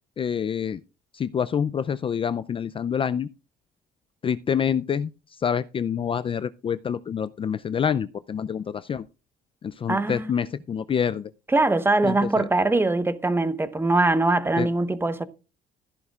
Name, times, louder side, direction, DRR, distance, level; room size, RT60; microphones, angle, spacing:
voice 1, 0.2-0.8 1.1-3.3 4.2-5.1 5.4-9.0 9.6-11.3 12.0-12.5 14.6-14.7, left 7 dB, 30° left, 0.4 m, -27 dB
voice 2, 9.9-10.3 11.5-15.2, right 2 dB, 15° right, 1.1 m, -22 dB
14.5 x 10.5 x 2.4 m
cardioid pair, 110°, 17 cm